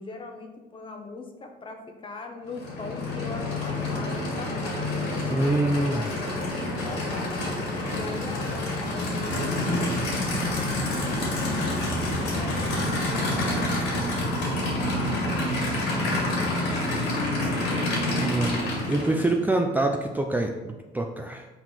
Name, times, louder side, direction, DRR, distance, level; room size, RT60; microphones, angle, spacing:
voice 1, 0.0-5.1 5.9-7.3 7.9-13.9 15.5-17.7 19.0-19.2, left 3 dB, 30° left, 4 dB, 1.0 m, -41 dB
Aircraft / Idling, 2.5-19.4, left 1 dB, 85° left, 2.1 m, -28 dB
voice 2, 5.3-6.0 18.2-18.6 18.9-21.5, right 2 dB, 10° right, 3 dB, 0.5 m, -25 dB
6.6 x 3.9 x 4.4 m, 1.1 s
cardioid pair, 110°, 17 cm